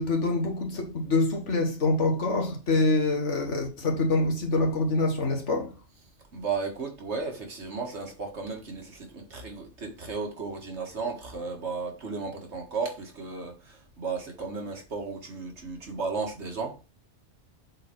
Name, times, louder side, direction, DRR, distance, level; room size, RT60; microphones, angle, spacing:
voice 1, 0.0-5.7, left 2 dB, 75° left, 2.0 m, -25 dB
voice 2, 6.3-16.9, right 4 dB, 70° right, 2.0 m, -34 dB
7.6 x 4.1 x 4.5 m
omnidirectional pair, 1.2 m